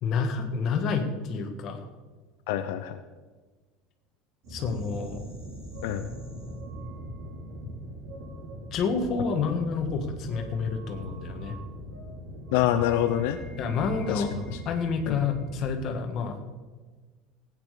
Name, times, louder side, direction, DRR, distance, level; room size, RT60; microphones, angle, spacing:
voice 1, 0.0-1.9 4.5-5.2 8.7-11.6 13.6-14.3 14.6-16.4, left 5 dB, 40° left, 4 dB, 1.7 m, -29 dB
voice 2, 2.5-3.0 5.8-6.1 12.5-13.4 14.1-14.2 15.1-15.2, left 12 dB, 75° left, 8 dB, 0.7 m, -26 dB
sound 1, 4.4-15.8, equal, 55° right, 5.3 m, -40 dB
17.0 x 9.0 x 5.1 m, 1.3 s
cardioid pair, 160°, 0 cm